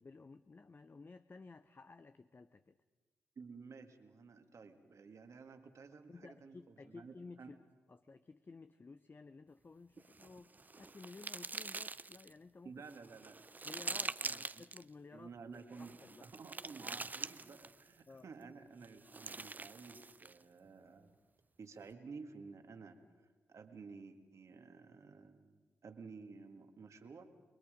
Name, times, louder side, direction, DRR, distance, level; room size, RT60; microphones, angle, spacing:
voice 1, 0.0-2.8 6.1-7.6 7.9-12.7 13.6-16.3 18.1-18.3, left 3 dB, 35° left, 12 dB, 0.7 m, -55 dB
voice 2, 3.4-7.5 12.6-13.5 13.9-14.6 15.1-21.1 21.6-23.0 23.5-25.6 25.8-27.2, right 4 dB, 60° right, 6 dB, 2.1 m, -53 dB
sound 1, 10.0-12.3 12.9-14.8 15.7-17.9 18.8-20.4, right 3 dB, 30° right, 0.6 m, -44 dB
30.0 x 20.5 x 5.2 m, 1.4 s
hypercardioid pair, 40°, 6 cm